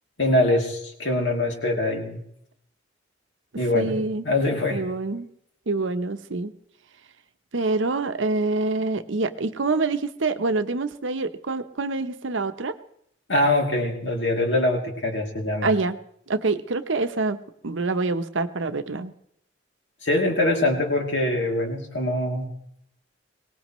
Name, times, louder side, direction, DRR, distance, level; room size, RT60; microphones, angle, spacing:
voice 1, 0.2-2.2 3.6-4.0 4.2-4.8 13.3-15.7 20.0-22.5, left 1 dB, 65° left, 1 dB, 2.8 m, -23 dB
voice 2, 3.7-4.2 4.7-5.3 5.7-6.5 7.5-12.7 15.6-16.0 16.3-17.4 17.6-19.1, right 3 dB, 75° right, 10 dB, 0.8 m, -26 dB
23.0 x 18.5 x 3.1 m, 0.72 s
head